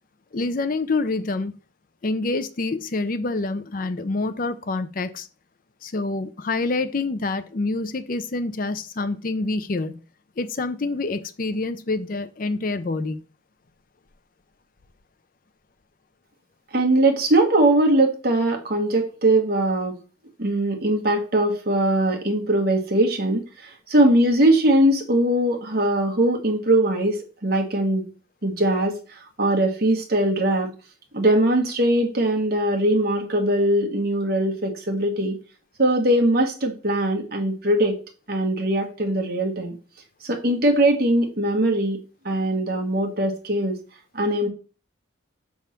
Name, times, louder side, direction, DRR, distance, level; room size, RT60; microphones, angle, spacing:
voice 1, 0.3-1.6 2.0-5.3 5.8-10.0 10.4-13.2, left 3 dB, 45° left, 12 dB, 0.5 m, -27 dB
voice 2, 16.7-20.0 20.4-28.1 28.4-30.7 31.1-35.4 35.8-38.0 38.3-39.7 40.2-42.0 42.2-43.8 44.1-44.5, right 1 dB, 50° right, 2 dB, 1.3 m, -21 dB
6.2 x 3.5 x 5.7 m, 0.36 s
head